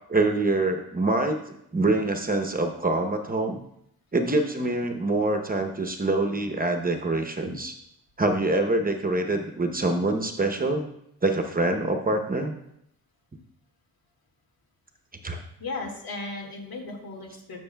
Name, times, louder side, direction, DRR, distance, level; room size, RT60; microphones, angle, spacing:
voice 1, 0.1-3.6 4.1-7.7 8.2-10.9 11.2-12.6 15.2-15.4, right 2 dB, 25° right, 5 dB, 0.8 m, -25 dB
voice 2, 15.6-17.6, left 3 dB, 75° left, 1 dB, 1.9 m, -36 dB
13.0 x 6.0 x 2.3 m, 0.76 s
cardioid pair, 90°, 37 cm